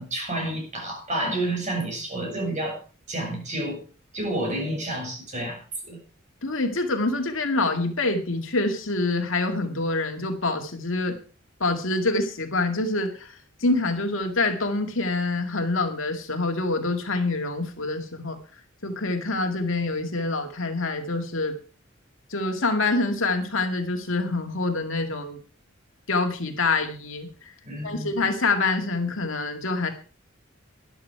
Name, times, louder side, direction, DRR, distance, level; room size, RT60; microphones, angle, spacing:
voice 1, 0.0-2.8 3.1-3.8 4.1-6.0 27.6-28.1, right 1 dB, 35° right, 1 dB, 6.1 m, -30 dB
voice 2, 6.4-11.2 11.6-18.4 18.8-21.6 22.3-25.4 26.1-27.3 27.8-29.9, left 3 dB, 70° left, 5 dB, 2.3 m, -26 dB
13.5 x 11.0 x 4.7 m, 0.38 s
head